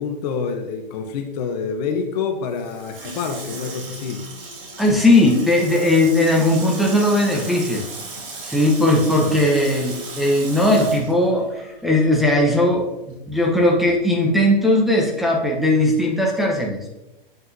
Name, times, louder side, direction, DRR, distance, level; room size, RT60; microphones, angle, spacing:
voice 1, 0.0-4.2 9.2-9.4, left 6 dB, 45° left, 5 dB, 0.8 m, -27 dB
Water tap faucet / Sink (filling or washing), 2.5-12.2 12.5-12.6, right 3 dB, 65° right, 2.2 m, -36 dB
voice 2, 4.8-7.8 8.4-16.9, left 1 dB, ahead, -2 dB, 0.9 m, -18 dB
7.7 x 5.6 x 2.7 m, 0.98 s
hypercardioid pair, 125°, 29 cm